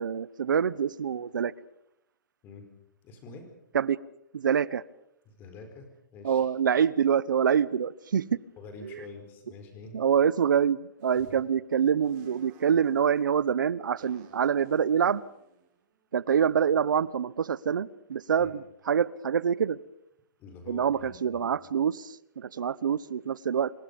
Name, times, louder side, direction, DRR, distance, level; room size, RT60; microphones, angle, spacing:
voice 1, 0.0-1.5 3.7-4.0 4.3-4.8 6.2-8.4 8.8-9.0 9.9-15.2 16.1-19.8 20.7-23.7, right 8 dB, 80° right, 20 dB, 1.0 m, -26 dB
voice 2, 3.0-3.5 5.3-6.5 8.6-10.1 18.4-18.5 20.4-21.5, left 3 dB, 20° left, 6 dB, 4.5 m, -46 dB
sound 1, 11.0-11.4 12.0-13.3 14.0-16.3, right 7 dB, 25° right, 4.2 m, -56 dB
26.5 x 22.5 x 5.4 m, 0.77 s
hypercardioid pair, 170°, 10 cm